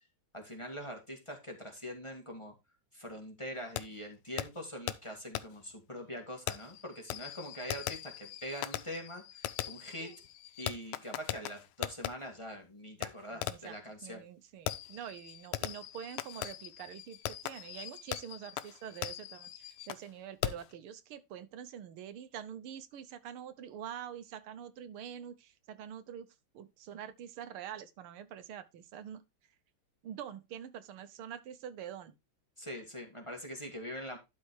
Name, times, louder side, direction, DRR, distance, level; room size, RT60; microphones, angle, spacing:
voice 1, 0.3-2.5 2.9-10.1 10.6-14.2 32.6-34.2, equal, 15° left, 1.9 m, -43 dB
Fireworks, 3.8-3.9 4.4-4.5 4.9-5.0 5.4-5.5 6.5-12.1 13.0-13.1 13.4-13.7 14.7-20.1 20.4-20.7, left 13 dB, 85° left, 1.6 m, -39 dB
voice 2, 13.3-13.7 14.0-26.3 26.5-29.2 30.0-32.1, right 9 dB, 90° right, 1.8 m, -45 dB
12.0 x 4.3 x 4.7 m
omnidirectional pair, 2.3 m